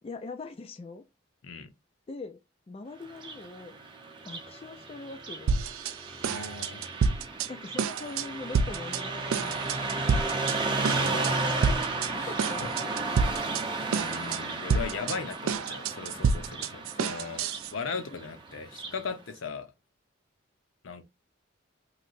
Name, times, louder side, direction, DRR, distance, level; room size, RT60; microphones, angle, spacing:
voice 1, 0.0-1.1 2.1-2.4 2.7-3.8 4.2-5.5 7.5-9.8 12.1-12.8 16.2-16.3 17.0-17.2, left 3 dB, 30° left, 0.3 m, -42 dB
Car passing by, 3.1-19.0, right 3 dB, 25° right, 0.6 m, -34 dB
sound 1, 5.5-6.0 6.2-7.5 7.8-8.3 8.5-9.0 9.3-10.6 10.8-11.3 11.6-12.1 12.4-13.6 13.9-14.4 14.7-17.7, right 5 dB, 90° right, 0.3 m, -28 dB
voice 2, 6.3-6.8 11.0-12.6 13.8-17.4 17.7-19.7 20.8-21.1, left 5 dB, 75° left, 0.6 m, -38 dB
3.2 x 2.8 x 2.5 m
head